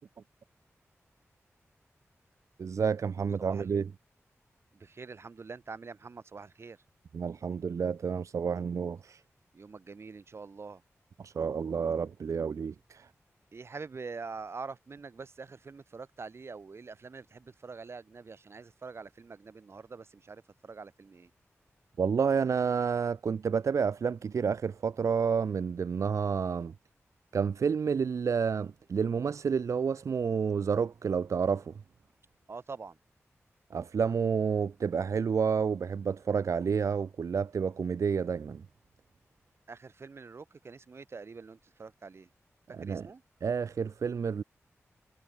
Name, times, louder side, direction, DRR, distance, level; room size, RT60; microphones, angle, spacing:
voice 1, 2.6-3.8 7.1-9.2 11.2-13.1 22.0-26.7 27.3-31.7 33.7-38.6 42.7-43.1 43.4-44.4, right 6 dB, 85° right, 1.4 m, -30 dB
voice 2, 3.4-3.7 4.7-6.8 9.5-10.8 13.5-21.3 32.5-33.0 39.7-42.3 42.8-43.2, right 4 dB, 55° right, 5.8 m, -45 dB
wide cardioid pair, 105°, 5 cm